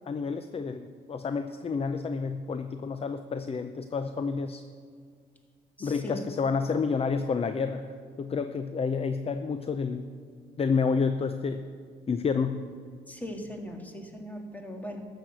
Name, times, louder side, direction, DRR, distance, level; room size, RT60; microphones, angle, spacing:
voice 1, 0.1-4.6 5.8-7.9 8.2-10.1 10.6-11.6 12.1-12.6, left 5 dB, 30° left, 9 dB, 0.5 m, -29 dB
voice 2, 5.8-6.2 13.1-15.0, equal, 10° left, 3 dB, 1.8 m, -39 dB
13.0 x 6.3 x 8.1 m, 2.1 s
cardioid pair, 90°, 20 cm